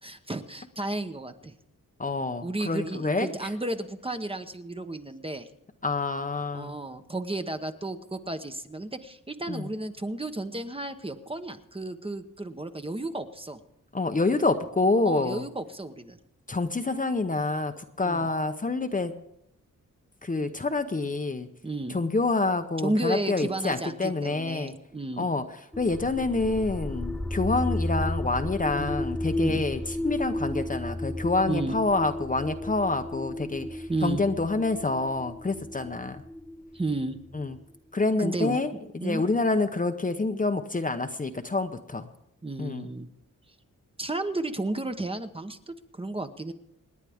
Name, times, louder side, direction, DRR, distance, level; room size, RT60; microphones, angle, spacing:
voice 1, 0.0-1.5 2.4-5.5 6.5-13.6 15.0-16.2 18.0-18.3 21.6-22.0 22.8-25.3 28.8-29.0 29.4-29.7 31.5-31.8 33.9-34.2 36.7-37.2 38.2-39.2 42.4-43.1 44.0-46.5, right 2 dB, 15° right, 7 dB, 0.9 m, -33 dB
voice 2, 2.0-3.3 5.8-6.8 9.5-9.7 13.9-15.4 16.5-19.2 20.2-21.5 21.9-24.7 25.2-25.5 25.8-36.2 37.3-37.6 37.9-42.1 42.6-42.9, left 3 dB, 25° left, 7 dB, 0.8 m, -27 dB
sound 1, 25.7-37.5, left 1 dB, ahead, 0.5 m, -33 dB
27.5 x 9.9 x 3.6 m, 0.78 s
wide cardioid pair, 100°, 32 cm